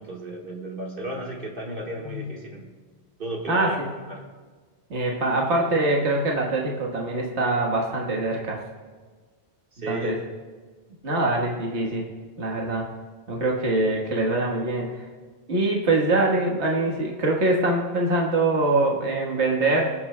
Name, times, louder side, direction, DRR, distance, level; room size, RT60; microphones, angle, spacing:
voice 1, 0.0-2.7 3.2-3.8 4.1-4.2 9.7-10.2, right 1 dB, 50° right, -1 dB, 1.7 m, -34 dB
voice 2, 3.5-3.9 4.9-8.6 9.9-10.2 11.0-12.0 12.4-12.9 13.3-15.0 15.5-19.9, right 2 dB, 75° right, -1 dB, 1.7 m, -24 dB
25.0 x 8.7 x 2.2 m, 1.4 s
omnidirectional pair, 1.2 m